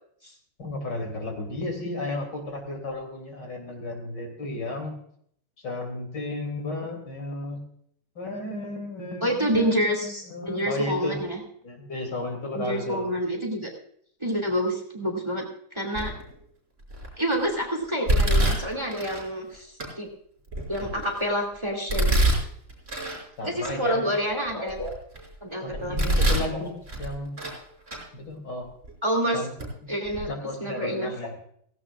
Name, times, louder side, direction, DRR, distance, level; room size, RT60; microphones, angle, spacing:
voice 1, 0.6-4.9 5.6-7.6 8.2-11.2 11.6-13.1 23.4-24.1 25.6-27.4 28.1-28.7 29.3-29.5 29.8-29.9 30.3-31.3, left 2 dB, 65° left, 3 dB, 3.6 m, -33 dB
voice 2, 9.2-11.4 12.5-13.7 14.2-15.5 15.7-16.1 17.2-20.1 20.7-22.2 23.4-24.9 25.4-26.4 29.0-29.4 29.9-30.3 30.6-31.1, equal, 15° right, 2 dB, 2.7 m, -28 dB
Domestic sounds home sounds, 15.9-16.3 16.9-17.3 18.1-19.2 19.8-19.9 20.5-21.2 21.9-23.2 23.6-23.7 24.3-25.2 25.7-26.5 26.9-27.6 27.9-28.0 28.8-28.9 29.6-29.7 30.0-30.2, right 1 dB, 40° right, 5.5 m, -25 dB
17.0 x 16.5 x 2.5 m, 0.65 s
omnidirectional pair, 2.1 m